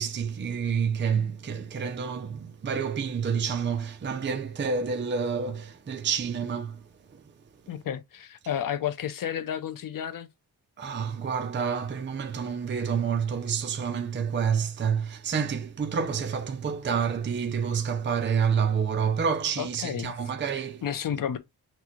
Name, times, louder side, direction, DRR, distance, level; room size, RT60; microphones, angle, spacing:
voice 1, 0.0-6.8 7.1-7.2 10.8-20.8, right 6 dB, 30° right, 0.6 m, -28 dB
voice 2, 7.7-10.3 19.6-20.1 20.8-21.4, left 9 dB, 55° left, 0.7 m, -31 dB
6.0 x 2.3 x 3.1 m
wide cardioid pair, 125°, 39 cm